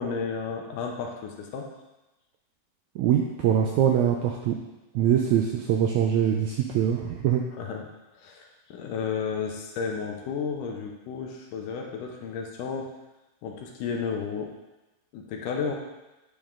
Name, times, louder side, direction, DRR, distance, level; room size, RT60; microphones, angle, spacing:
voice 1, 0.0-1.7 7.6-7.9 8.2-12.9 13.4-14.5 15.1-15.7, left 6 dB, 75° left, 2 dB, 2.3 m, -32 dB
voice 2, 2.9-4.6 4.9-7.4, right 9 dB, 80° right, 1 dB, 1.7 m, -23 dB
9.0 x 5.1 x 3.7 m, 1.0 s
omnidirectional pair, 3.9 m